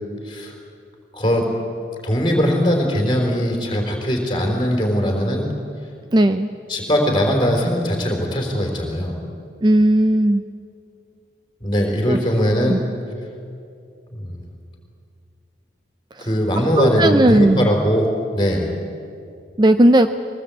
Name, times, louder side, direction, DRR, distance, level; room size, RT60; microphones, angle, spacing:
voice 1, 1.1-1.5 2.0-5.5 6.7-9.2 11.6-12.8 14.1-14.5 16.2-18.7, equal, 25° left, 1 dB, 4.2 m, -20 dB
voice 2, 6.1-6.5 9.6-10.4 12.1-12.2 12.7-12.8 16.2-16.3 16.8-17.7 19.6-20.1, right 1 dB, 25° right, 9 dB, 0.5 m, -15 dB
22.5 x 19.0 x 8.6 m, 2.5 s
head